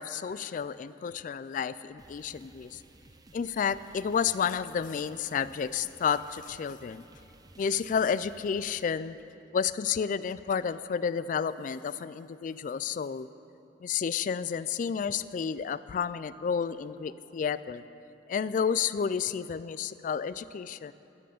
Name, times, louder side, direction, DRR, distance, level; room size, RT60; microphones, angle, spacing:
voice 1, 0.0-2.8 3.3-7.0 7.6-9.2 9.5-13.3 13.8-17.8 18.3-20.9, left 7 dB, 45° left, 16 dB, 0.3 m, -31 dB
sound 1, 2.0-8.8, right 2 dB, 20° right, 0.6 m, -56 dB
15.0 x 7.7 x 6.8 m, 2.9 s
head